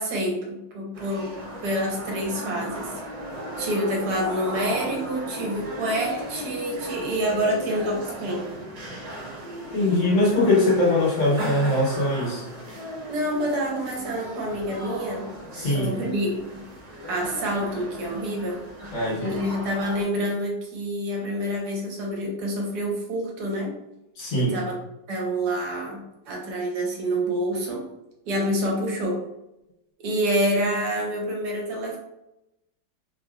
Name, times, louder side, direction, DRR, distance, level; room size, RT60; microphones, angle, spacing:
voice 1, 0.0-2.9 3.6-8.5 13.1-16.6 17.1-18.6 19.3-23.7 24.4-24.8 25.1-27.8 28.2-29.2 30.0-32.0, equal, 70° right, -1 dB, 1.3 m, -27 dB
sound 1, 0.9-20.0, equal, 85° right, 0.3 m, -36 dB
voice 2, 9.7-12.4 15.5-15.9 18.9-19.5 24.2-24.6, left 1 dB, 65° left, -2 dB, 1.2 m, -22 dB
3.1 x 2.6 x 2.3 m, 0.91 s
omnidirectional pair, 1.9 m